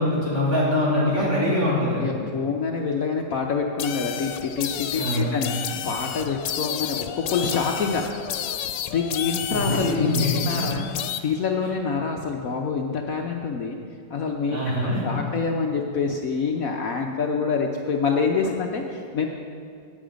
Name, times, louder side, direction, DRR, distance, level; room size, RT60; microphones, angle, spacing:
voice 1, 0.0-2.0 4.9-5.3 9.5-10.3 14.5-15.0, left 1 dB, 40° right, -8 dB, 4.6 m, -23 dB
voice 2, 1.2-1.6 2.0-8.1 8.9-10.1 10.5-10.8 11.2-13.8 14.1-19.3, left 5 dB, 60° left, 1 dB, 1.1 m, -26 dB
sound 1, 3.8-11.2, left 10 dB, 85° left, 1.3 m, -31 dB
17.5 x 8.6 x 5.1 m, 2.3 s
omnidirectional pair, 1.9 m